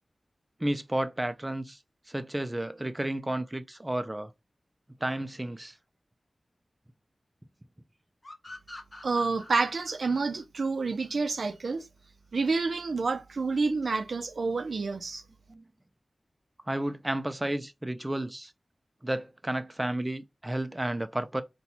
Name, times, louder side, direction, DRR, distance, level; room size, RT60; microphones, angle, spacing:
voice 1, 0.6-1.8 2.1-4.3 5.0-5.8 15.5-15.6 16.7-18.5 19.0-21.4, right 1 dB, 20° right, 0.4 m, -32 dB
sound 1, 8.2-11.6, left 1 dB, 35° left, 0.9 m, -47 dB
voice 2, 9.0-11.8 12.3-15.2, right 4 dB, 75° right, 0.5 m, -28 dB
4.2 x 2.2 x 4.0 m
wide cardioid pair, 80°, 0 cm